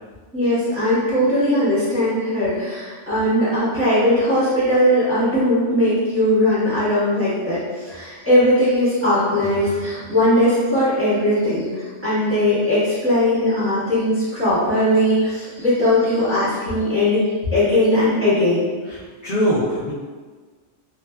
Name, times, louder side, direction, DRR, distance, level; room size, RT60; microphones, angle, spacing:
voice 1, 0.3-17.2 17.5-18.7, left 1 dB, 10° right, -14 dB, 1.2 m, -19 dB
voice 2, 18.9-19.9, equal, 45° left, -14 dB, 0.7 m, -23 dB
2.5 x 2.3 x 2.2 m, 1.4 s
omnidirectional pair, 1.3 m